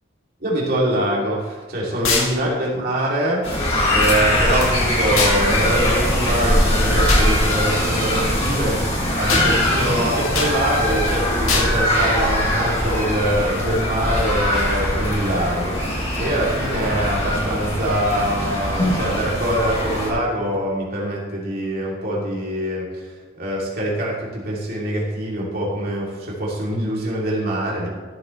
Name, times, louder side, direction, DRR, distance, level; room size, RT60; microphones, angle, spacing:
voice 1, 0.4-3.5 3.8-23.1 23.4-27.9, right 1 dB, 45° right, -4 dB, 2.8 m, -24 dB
sound 1, 2.0-2.3 5.2-5.4 7.1-7.3 9.3-9.5 10.3-10.5 11.5-11.7, left 4 dB, 85° left, 1.9 m, -21 dB
sound 2, 3.4-20.1, left 1 dB, 30° left, 2.2 m, -21 dB
13.5 x 7.6 x 3.2 m, 1.4 s
head